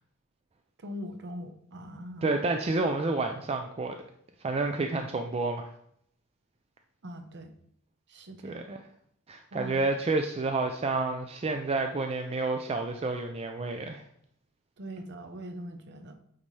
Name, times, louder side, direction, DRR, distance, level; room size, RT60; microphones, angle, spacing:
voice 1, 0.8-2.3 7.0-7.5 8.1-8.6 9.5-9.8 14.8-16.1, equal, 55° right, 7 dB, 0.8 m, -41 dB
voice 2, 2.2-3.9 4.4-5.7 8.4-8.8 9.3-14.0, right 3 dB, 30° right, 5 dB, 0.4 m, -29 dB
8.7 x 4.1 x 3.2 m, 0.68 s
head